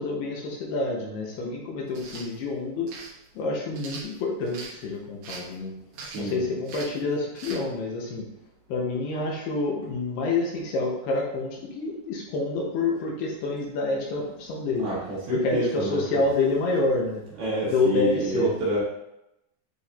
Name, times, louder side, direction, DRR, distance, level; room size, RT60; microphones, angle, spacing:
voice 1, 0.0-2.9 3.4-5.7 6.2-8.2 8.7-14.9 15.3-17.2 17.6-18.5, left 3 dB, 75° left, -2 dB, 3.0 m, -27 dB
sound 1, 1.9-2.3 2.9-3.1 3.7-4.7 5.2-5.5 5.9-6.3 6.6-7.0 7.3-7.6, right 4 dB, 85° right, 1.4 m, -40 dB
voice 2, 6.0-6.5 14.8-16.0 17.4-18.8, right 2 dB, 65° right, -7 dB, 4.0 m, -29 dB
8.8 x 4.7 x 2.7 m, 0.86 s
omnidirectional pair, 4.9 m